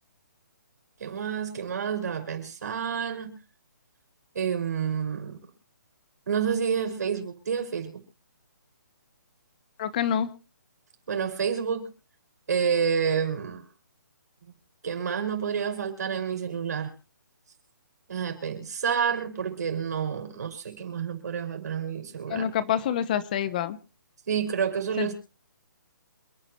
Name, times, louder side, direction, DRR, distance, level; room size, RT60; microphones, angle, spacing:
voice 1, 1.0-3.3 4.3-5.4 6.3-7.9 11.1-11.9 12.5-13.6 14.8-16.9 18.1-22.5 24.3-25.1, right 7 dB, 60° right, 5 dB, 5.6 m, -29 dB
voice 2, 9.8-10.3 22.3-23.8 25.0-25.1, left 9 dB, 25° left, 14 dB, 0.8 m, -27 dB
27.5 x 9.8 x 3.1 m, 0.33 s
hypercardioid pair, 170°, 10 cm